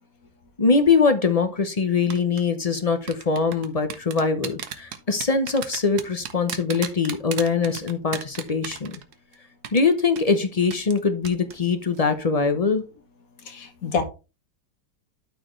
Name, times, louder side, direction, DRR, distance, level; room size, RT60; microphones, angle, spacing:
voice 1, 0.6-9.0 9.7-12.8, left 4 dB, 35° left, 8 dB, 0.6 m, -22 dB
sound 1, 2.1-2.4 3.1-9.3 9.6-9.8 10.2-10.3 10.7-11.0 11.3-11.5 11.8-12.0, right 9 dB, 75° right, 1.5 m, -33 dB
voice 2, 13.5-14.0, left 5 dB, 60° left, 7 dB, 1.6 m, -27 dB
12.5 x 4.4 x 3.1 m, 0.30 s
omnidirectional pair, 1.7 m